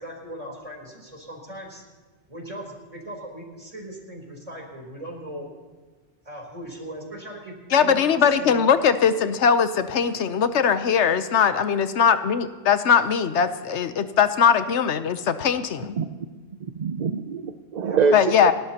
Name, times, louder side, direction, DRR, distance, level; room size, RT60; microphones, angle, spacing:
voice 1, 0.0-1.8 2.3-5.5 6.2-8.6 17.8-18.2, equal, 30° right, 0 dB, 3.7 m, -38 dB
voice 2, 7.7-16.0 18.1-18.5, left 7 dB, 80° left, 11 dB, 1.1 m, -20 dB
voice 3, 16.6-18.2, right 5 dB, 50° right, 9 dB, 0.6 m, -24 dB
29.0 x 12.5 x 2.9 m, 1.4 s
omnidirectional pair, 1.2 m